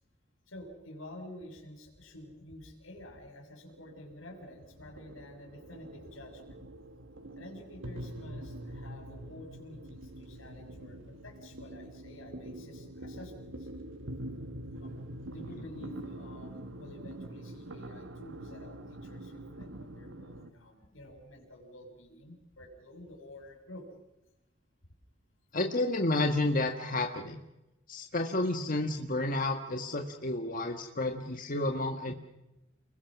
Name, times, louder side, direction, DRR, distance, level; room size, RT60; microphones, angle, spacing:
voice 1, 0.5-6.6 7.4-13.7 14.8-15.0 15.3-23.9, left 1 dB, 85° left, 3 dB, 6.5 m, -49 dB
sound 1, 3.7-20.5, right 1 dB, 75° right, 1.6 m, -45 dB
voice 2, 25.5-27.4 27.9-32.1, left 2 dB, 45° left, 4 dB, 1.7 m, -31 dB
29.5 x 21.5 x 6.2 m, 0.94 s
head